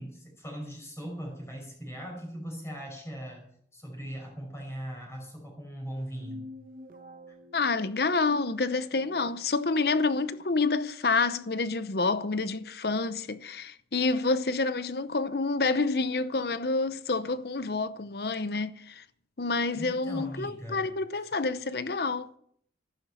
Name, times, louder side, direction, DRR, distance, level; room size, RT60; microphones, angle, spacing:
voice 1, 0.0-6.4 7.3-7.4 19.7-21.2, equal, 15° left, 5.6 m, -40 dB
sound 1, 6.0-9.4, left 1 dB, 45° right, 1.1 m, -47 dB
voice 2, 7.5-19.0 19.4-22.3, left 3 dB, 60° left, 0.8 m, -28 dB
14.5 x 12.0 x 5.7 m
head